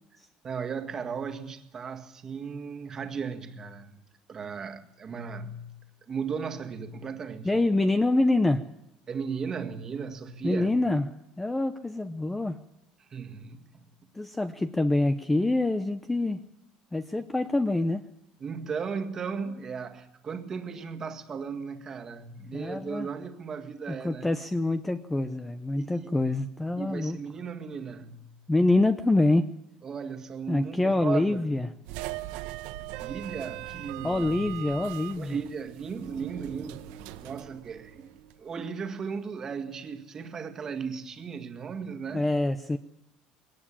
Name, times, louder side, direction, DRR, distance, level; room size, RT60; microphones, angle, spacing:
voice 1, 0.4-4.0 4.3-5.7 6.1-7.5 9.1-10.8 13.1-13.7 18.4-24.3 25.7-26.1 26.8-28.3 29.8-31.6 33.0-34.4 35.2-36.9 37.2-38.1 38.4-42.2, right 6 dB, 25° right, 1.8 m, -36 dB
voice 2, 7.4-8.7 10.4-11.1 11.4-12.6 14.1-16.4 16.9-18.0 22.5-23.1 23.9-27.2 28.5-29.5 30.5-31.7 34.0-35.4 42.1-42.8, left 2 dB, 5° left, 0.7 m, -26 dB
sound 1, 31.9-38.4, right 15 dB, 80° right, 1.3 m, -40 dB
21.5 x 18.5 x 8.7 m
cardioid pair, 165°, 2 cm